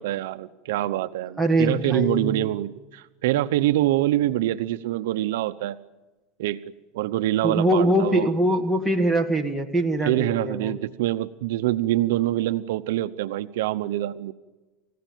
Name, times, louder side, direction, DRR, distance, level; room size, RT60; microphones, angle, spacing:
voice 1, 0.0-5.8 6.4-6.6 6.9-8.3 10.0-14.3, right 15 dB, 80° right, 10 dB, 0.9 m, -25 dB
voice 2, 1.4-2.5 7.4-10.8, right 1 dB, ahead, 6 dB, 1.7 m, -23 dB
29.0 x 16.5 x 9.1 m, 1.2 s
supercardioid pair, 155°, 0 cm